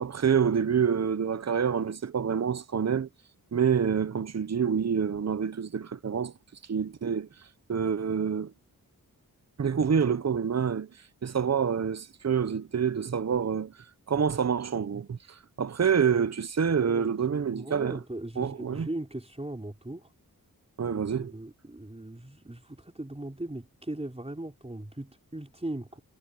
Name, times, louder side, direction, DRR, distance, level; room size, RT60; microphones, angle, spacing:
voice 1, 0.0-3.1 3.5-6.3 6.7-7.3 7.7-8.5 9.6-10.9 11.2-13.7 14.1-18.0 18.4-18.9 20.8-21.3, right 7 dB, 45° right, 0.8 m, -27 dB
voice 2, 16.8-20.1 20.8-26.0, right 1 dB, 15° right, 4.0 m, -39 dB
wide cardioid pair, 90°, 37 cm